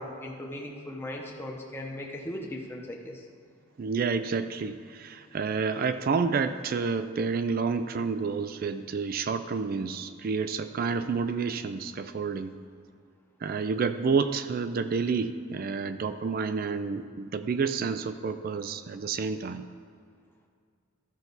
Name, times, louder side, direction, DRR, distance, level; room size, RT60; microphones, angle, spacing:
voice 1, 0.0-3.2, left 1 dB, 10° left, -1 dB, 0.8 m, -38 dB
voice 2, 3.8-12.6 13.4-19.6, right 5 dB, 45° right, 11 dB, 0.4 m, -29 dB
13.0 x 5.8 x 4.0 m, 2.1 s
head